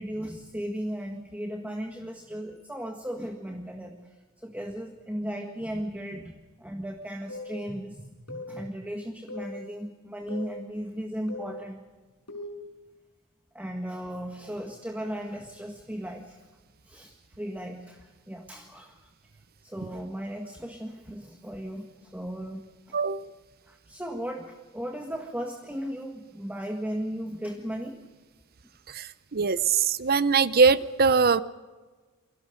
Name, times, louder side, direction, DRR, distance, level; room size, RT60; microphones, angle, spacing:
voice 1, 0.0-6.3 6.6-11.8 13.5-16.4 16.8-19.1 19.6-23.0 23.7-28.0, equal, 5° right, 3 dB, 1.6 m, -36 dB
sound 1, 7.3-7.5 8.3-8.5 9.3-9.5 10.3-10.5 11.3-11.5 12.3-12.6, left 2 dB, 85° left, 6.2 m, -38 dB
voice 2, 22.9-23.3 28.9-29.0 29.3-31.4, right 5 dB, 45° right, 15 dB, 0.7 m, -22 dB
28.5 x 23.5 x 5.3 m, 1.3 s
head